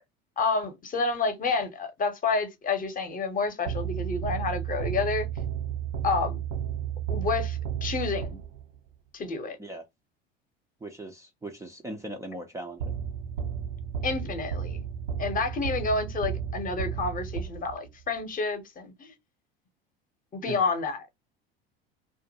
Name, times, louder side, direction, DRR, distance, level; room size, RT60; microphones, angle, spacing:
voice 1, 0.4-5.3 6.0-6.4 7.1-8.4 9.1-9.6 14.0-14.8 15.2-19.1 20.3-21.1, left 4 dB, 25° left, 0.8 m, -29 dB
sound 1, 3.7-8.8 12.8-18.0, right 9 dB, 80° right, 0.6 m, -33 dB
voice 2, 10.8-12.9 20.5-20.6, right 1 dB, 10° right, 0.4 m, -39 dB
2.4 x 2.1 x 2.8 m
hypercardioid pair, 75°, 30 cm